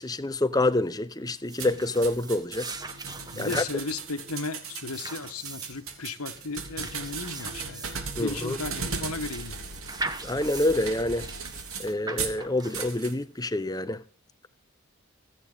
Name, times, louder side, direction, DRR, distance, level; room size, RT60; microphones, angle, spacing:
voice 1, 0.0-2.7 3.4-3.6 8.2-8.6 10.2-11.3 11.8-14.0, left 1 dB, 15° left, 0.8 m, -27 dB
sound 1, 1.3-13.4, right 3 dB, 15° right, 1.3 m, -40 dB
sound 2, 1.6-12.4 12.7-13.1, right 5 dB, 70° right, 3.2 m, -37 dB
voice 2, 3.3-7.9 8.2-9.6, left 3 dB, 85° left, 1.6 m, -35 dB
26.0 x 9.2 x 4.0 m
head